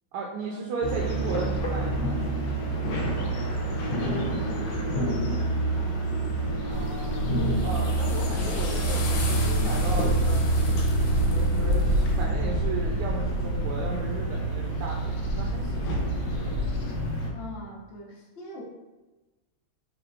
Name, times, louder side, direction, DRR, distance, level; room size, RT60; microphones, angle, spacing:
voice 1, 0.1-2.4 6.7-7.2 7.6-10.4 11.1-16.0, right 3 dB, 80° right, -1 dB, 1.4 m, -35 dB
sound 1, 0.8-17.3, right 1 dB, 70° left, 1.2 m, -27 dB
voice 2, 3.6-6.1 17.3-18.6, left 2 dB, 55° left, -4 dB, 0.7 m, -42 dB
sound 2, 6.7-12.3, equal, 90° left, 1.6 m, -31 dB
sound 3, 9.2-15.5, right 3 dB, 20° left, 1.0 m, -32 dB
5.2 x 3.3 x 2.4 m, 1.1 s
omnidirectional pair, 2.4 m